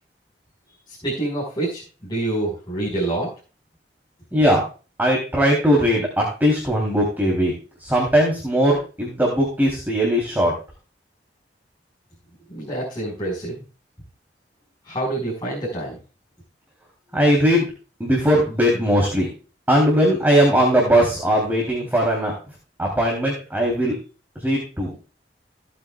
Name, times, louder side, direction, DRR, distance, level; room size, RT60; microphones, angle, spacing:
voice 1, 1.0-3.3 12.5-13.6 14.8-15.9, right 2 dB, 25° left, -5 dB, 5.1 m, -26 dB
voice 2, 4.3-4.6 5.0-7.5 7.8-10.5 17.1-17.7 18.0-19.3 19.7-22.3 22.8-23.9 24.4-24.9, equal, 10° right, -2 dB, 3.3 m, -19 dB
17.0 x 8.6 x 2.4 m, 0.34 s
head